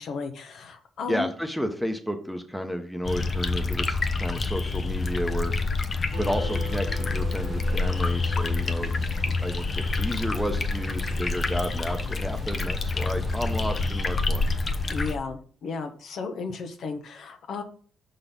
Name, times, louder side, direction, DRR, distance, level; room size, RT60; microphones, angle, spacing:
voice 1, 0.0-1.3 14.9-17.6, left 4 dB, 65° left, 6 dB, 1.0 m, -34 dB
voice 2, 1.1-5.5 6.2-9.1 9.4-14.5, equal, ahead, 5 dB, 0.9 m, -32 dB
sound 1, 3.0-15.2, left 3 dB, 35° left, 0.8 m, -27 dB
sound 2, 6.1-13.9, right 5 dB, 60° right, 1.3 m, -42 dB
5.8 x 4.0 x 5.2 m, 0.44 s
cardioid pair, 90°, 0 cm